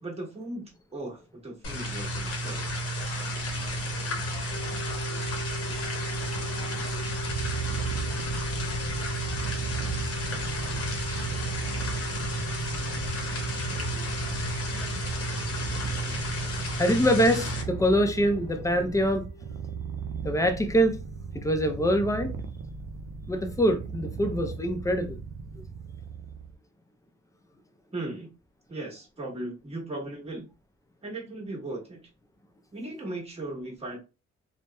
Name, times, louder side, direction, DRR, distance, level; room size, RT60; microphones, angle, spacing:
voice 1, 0.0-2.6 27.9-28.3 28.7-30.5 31.0-32.0 32.7-34.0, right 2 dB, 20° right, 1.2 m, -37 dB
sound 1, 1.6-17.6, equal, 50° left, 0.8 m, -32 dB
sound 2, 4.5-21.9, right 1 dB, 80° left, 0.5 m, -45 dB
Purr, 7.2-26.5, right 5 dB, 50° right, 0.4 m, -37 dB
voice 2, 15.6-16.2 16.8-19.3 20.2-21.0 21.3-22.3 23.3-25.2, equal, 10° left, 0.4 m, -25 dB
2.7 x 2.0 x 2.2 m
cardioid pair, 90°, 30 cm